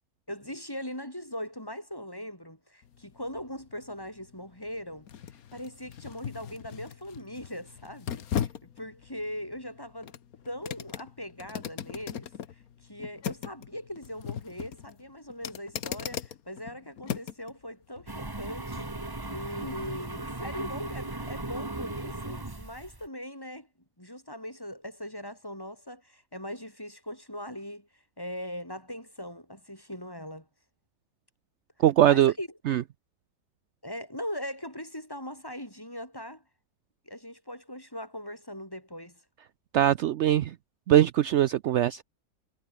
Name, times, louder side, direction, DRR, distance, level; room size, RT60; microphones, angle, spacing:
voice 1, 0.3-5.1 5.5-10.1 10.4-12.3 12.8-18.9 19.3-23.7 24.0-27.9 28.2-30.5 32.0-32.8 33.8-36.4 37.1-39.2, equal, 15° left, 6.1 m, -40 dB
sound 1, 2.8-17.5 18.0-18.1, left 9 dB, 65° left, 1.5 m, -39 dB
sound 2, 18.1-23.1, right 2 dB, 15° right, 1.4 m, -37 dB
voice 2, 31.8-32.3 32.7-32.8 39.7-40.5 40.9-42.0, right 12 dB, 70° right, 0.7 m, -21 dB
omnidirectional pair, 1.7 m